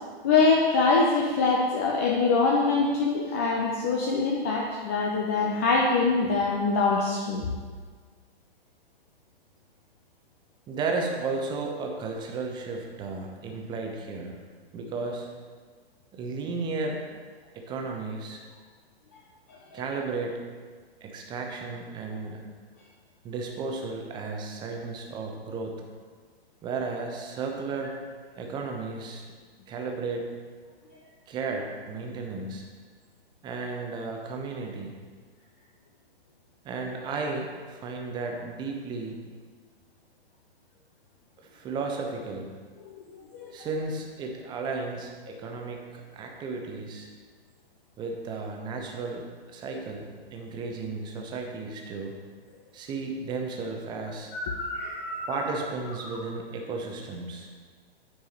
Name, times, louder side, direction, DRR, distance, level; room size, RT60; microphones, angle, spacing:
voice 1, 0.2-7.5 19.5-19.8 43.3-43.5 45.3-45.4 54.3-55.5 56.1-56.2, left 4 dB, 15° left, -2 dB, 0.3 m, -24 dB
voice 2, 10.7-14.4 14.7-15.3 16.1-17.0 17.5-18.4 19.7-20.4 21.0-22.4 23.2-25.7 26.6-27.9 28.4-29.3 29.7-30.3 31.3-32.6 33.4-35.0 36.6-39.2 41.4-42.5 43.5-47.1 48.0-50.1 50.3-52.1 52.7-54.3 55.3-57.5, right 4 dB, 15° right, 1 dB, 0.7 m, -34 dB
9.1 x 4.8 x 4.1 m, 1.5 s
figure-of-eight pair, 115°, 31 cm